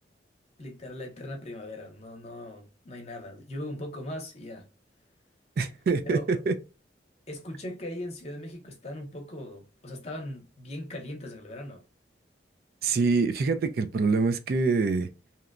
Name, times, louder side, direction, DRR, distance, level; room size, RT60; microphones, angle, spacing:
voice 1, 0.6-4.7 6.0-6.3 7.3-11.8, left 1 dB, 35° left, 0.7 m, -39 dB
voice 2, 5.6-6.5 12.8-15.1, right 4 dB, 55° right, 0.3 m, -25 dB
2.8 x 2.1 x 2.4 m
head